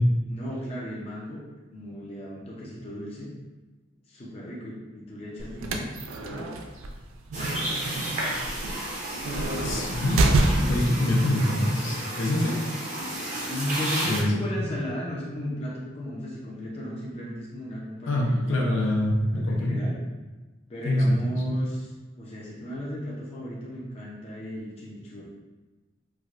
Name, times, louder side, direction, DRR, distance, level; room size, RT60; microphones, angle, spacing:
voice 1, 0.2-1.4 1.7-3.3 4.1-5.9 6.2-6.5 7.3-7.7 13.5-18.9 19.3-20.0 20.7-21.9 22.2-25.3, equal, 30° left, -5 dB, 0.5 m, -35 dB
sound 1, 5.4-11.0, right 2 dB, 85° right, 0.4 m, -27 dB
sound 2, 7.3-14.2, right 1 dB, 35° right, 0.7 m, -32 dB
voice 2, 9.6-12.6 14.1-14.4 18.1-19.8 20.8-21.6, left 1 dB, 70° left, -1 dB, 0.6 m, -25 dB
4.6 x 2.2 x 2.4 m, 1.2 s
head